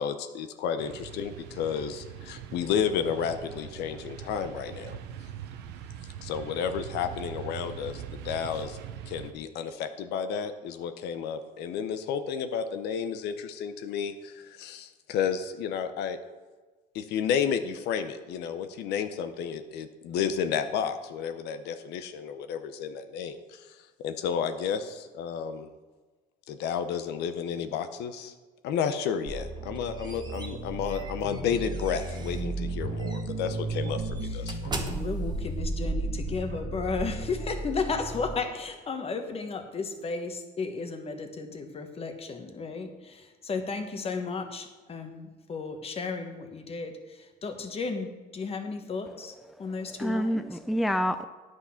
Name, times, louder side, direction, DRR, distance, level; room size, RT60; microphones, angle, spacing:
voice 1, 0.0-5.0 6.2-8.8 9.1-16.2 16.9-25.7 26.5-28.3 28.6-34.7, left 7 dB, 80° left, 10 dB, 0.7 m, -32 dB
sound 1, 0.8-9.3, right 9 dB, 90° right, 0.8 m, -42 dB
sound 2, 29.3-38.4, right 2 dB, 45° right, 1.5 m, -34 dB
sound 3, 29.6-32.5 33.0-33.2 33.7-37.9, right 2 dB, 25° right, 1.2 m, -38 dB
voice 2, 34.8-50.5, left 4 dB, 35° left, 6 dB, 1.3 m, -34 dB
voice 3, 49.6-51.3, equal, ahead, 10 dB, 0.4 m, -28 dB
9.8 x 6.4 x 5.7 m, 1.3 s
cardioid pair, 110°, 17 cm